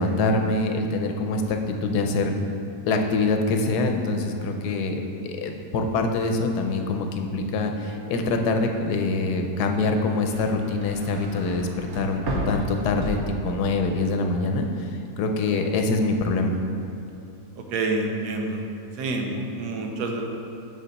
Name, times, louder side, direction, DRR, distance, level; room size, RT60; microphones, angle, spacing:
voice 1, 0.0-2.3 2.9-14.9 15.2-16.6, left 3 dB, 80° left, 4 dB, 1.2 m, -25 dB
sound 1, 9.8-14.0 14.3-14.9, right 1 dB, 65° right, 1.5 m, -33 dB
voice 2, 17.6-18.6 18.9-20.2, right 2 dB, 90° right, 2 dB, 1.4 m, -28 dB
7.5 x 6.4 x 4.0 m, 2.6 s
omnidirectional pair, 1.7 m